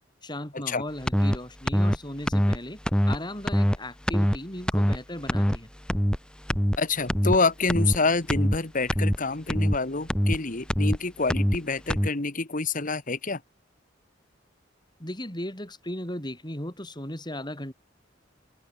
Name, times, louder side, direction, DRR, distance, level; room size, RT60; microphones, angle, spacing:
voice 1, 0.2-2.8 3.1-5.7 15.0-17.7, left 1 dB, 20° left, 6.0 m, -36 dB
sound 1, 1.1-1.4 1.7-2.0 2.3-2.6 2.9-3.2 3.5-3.8 4.1-4.4 4.7-5.0 5.3-5.6 5.9-6.2 6.5-6.8 7.1-7.4 7.7-8.0 8.3-8.6 8.9-9.2 9.5-9.8 10.1-10.4 10.7-11.0 11.3-11.6 11.9-12.1, equal, 5° left, 1.2 m, -23 dB
voice 2, 6.8-13.4, left 3 dB, 45° left, 1.6 m, -27 dB
head